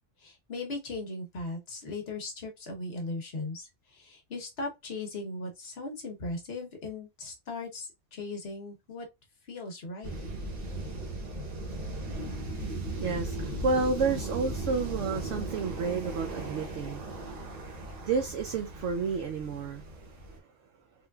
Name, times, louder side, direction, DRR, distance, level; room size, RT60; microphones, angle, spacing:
voice 1, 0.2-9.1 9.5-10.1, left 2 dB, 55° left, 1.2 m, -38 dB
sound 1, 10.0-20.4, right 1 dB, 40° right, 0.8 m, -37 dB
voice 2, 12.8-20.2, right 4 dB, 75° right, 0.9 m, -31 dB
3.7 x 2.5 x 2.2 m
omnidirectional pair, 1.3 m